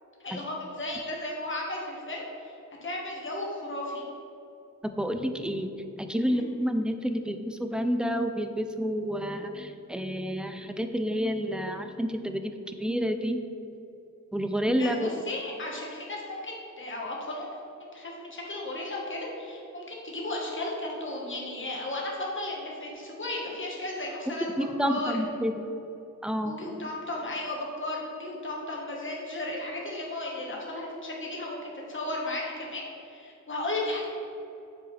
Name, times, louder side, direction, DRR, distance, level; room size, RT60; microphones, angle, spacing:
voice 1, 0.2-2.5 2.8-4.0 6.2-6.5 14.8-17.5 17.9-24.5 24.8-25.1 26.4-34.1, left 1 dB, 40° left, -2 dB, 1.4 m, -35 dB
voice 2, 4.8-13.4 14.3-15.1 24.6-25.6 26.2-26.7, equal, 5° right, 7 dB, 0.3 m, -29 dB
7.8 x 4.7 x 3.3 m, 2.8 s
wide cardioid pair, 110°, 31 cm